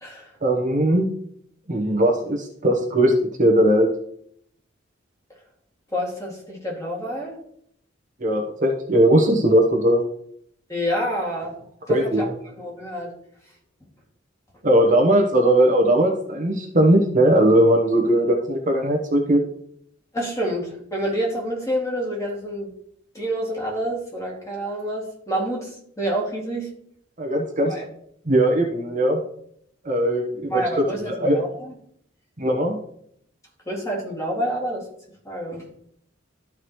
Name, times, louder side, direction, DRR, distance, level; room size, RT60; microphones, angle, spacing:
voice 1, 0.4-1.1 1.7-3.1 3.4-3.9 8.2-10.0 11.9-12.3 14.6-19.4 27.2-27.7 28.3-29.2 29.8-31.4 32.4-32.8, right 1 dB, 40° right, 1 dB, 1.1 m, -19 dB
voice 2, 5.9-7.4 10.7-11.6 11.9-13.1 20.1-22.7 23.1-26.7 27.6-27.8 30.5-31.7 33.7-34.9 35.2-35.7, equal, 15° left, -3 dB, 2.4 m, -28 dB
13.0 x 4.8 x 3.1 m, 0.68 s
head